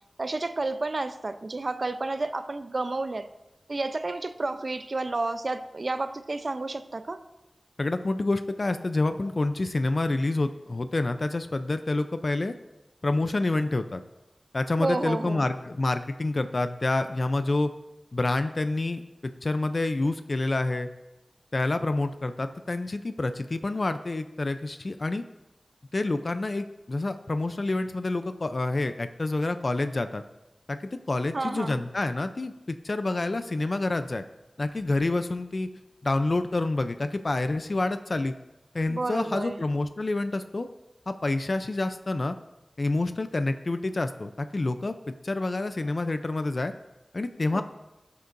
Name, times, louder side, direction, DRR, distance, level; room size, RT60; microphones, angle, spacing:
voice 1, 0.2-3.3 3.7-7.2 14.8-15.5 31.3-31.8 38.9-39.6 47.5-47.6, right 2 dB, 55° right, 10 dB, 0.6 m, -31 dB
voice 2, 7.8-12.5 13.0-14.0 14.5-17.7 18.1-20.9 21.5-25.2 25.9-30.2 30.7-34.2 34.6-35.7 36.0-38.3 38.7-40.7 41.1-42.3 42.8-46.7 47.1-47.6, left 2 dB, 55° left, 9 dB, 0.5 m, -28 dB
17.0 x 6.7 x 2.6 m, 0.99 s
wide cardioid pair, 65°, 0 cm